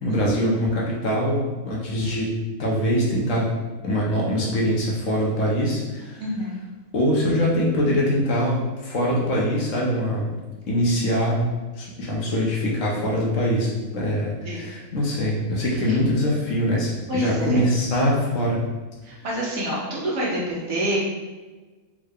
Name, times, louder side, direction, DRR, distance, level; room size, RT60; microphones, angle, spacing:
voice 1, 0.0-2.3 2.6-3.5 3.8-6.2 6.9-10.3 10.7-18.6, equal, 65° left, -3 dB, 1.0 m, -23 dB
voice 2, 6.2-6.6 14.4-14.8 15.9-16.0 17.1-17.7 19.0-21.0, equal, 70° right, -5 dB, 1.3 m, -28 dB
3.6 x 2.1 x 3.4 m, 1.3 s
omnidirectional pair, 1.5 m